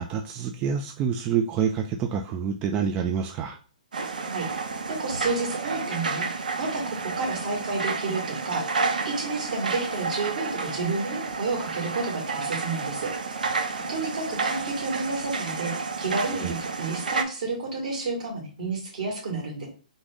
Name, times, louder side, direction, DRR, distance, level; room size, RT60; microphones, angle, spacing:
voice 1, 0.0-3.6 16.3-16.5, right 7 dB, 25° right, 5 dB, 0.3 m, -27 dB
sound 1, 3.9-17.2, right 4 dB, 85° right, 0.6 m, -31 dB
voice 2, 4.2-6.2 6.6-13.1 13.9-19.7, right 3 dB, 60° right, -1 dB, 2.1 m, -31 dB
3.7 x 2.5 x 3.5 m, 0.38 s
hypercardioid pair, 145°, 4 cm